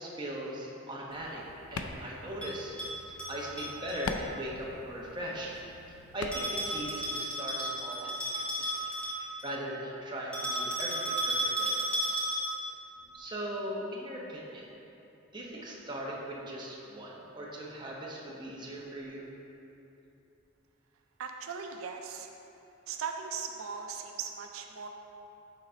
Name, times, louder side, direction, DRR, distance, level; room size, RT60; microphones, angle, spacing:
voice 1, 0.0-1.4 1.7-2.8 3.0-5.5 6.1-12.3 13.1-14.6 15.3-19.3, equal, 20° right, -4 dB, 0.9 m, -39 dB
sound 1, 1.1-7.0, left 4 dB, 85° left, 0.4 m, -43 dB
Bell, 2.4-4.1 6.3-9.6 10.3-12.7, right 1 dB, 5° left, 1.4 m, -33 dB
voice 2, 21.2-22.3 22.9-24.9, right 6 dB, 85° right, 4 dB, 0.4 m, -38 dB
6.5 x 4.1 x 5.1 m, 2.9 s
head